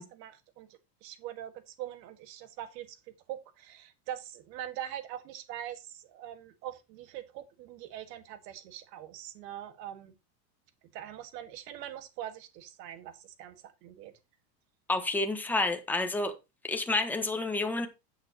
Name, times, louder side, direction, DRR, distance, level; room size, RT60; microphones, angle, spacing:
voice 1, 0.0-3.0 3.3-10.2 10.9-14.1, right 11 dB, 75° right, 1.9 m, -43 dB
voice 2, 14.9-16.3 16.6-17.9, left 2 dB, 5° left, 1.3 m, -29 dB
11.0 x 8.0 x 3.0 m
supercardioid pair, 125°, 50 cm